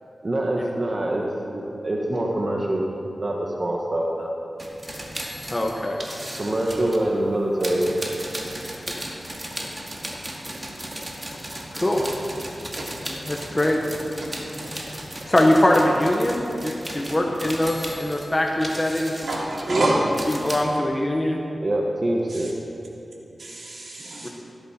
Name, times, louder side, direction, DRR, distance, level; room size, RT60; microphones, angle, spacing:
voice 1, 0.2-1.3 1.5-2.9 3.2-4.1 6.4-7.9 19.7-19.9 21.6-22.5, right 1 dB, 40° right, -1 dB, 1.4 m, -24 dB
sound 1, 4.6-7.0 7.6-20.6, right 1 dB, 20° right, 2.2 m, -35 dB
voice 2, 5.5-6.0 8.9-9.0 11.7-12.0 13.3-13.8 15.3-19.3 20.3-21.4 24.2-24.3, left 1 dB, 20° left, 0 dB, 1.2 m, -22 dB
voice 3, 19.2-20.0 22.3-22.5 23.4-24.3, right 2 dB, 65° right, -5 dB, 3.8 m, -28 dB
15.5 x 13.0 x 4.4 m, 2.8 s
wide cardioid pair, 70°, 0 cm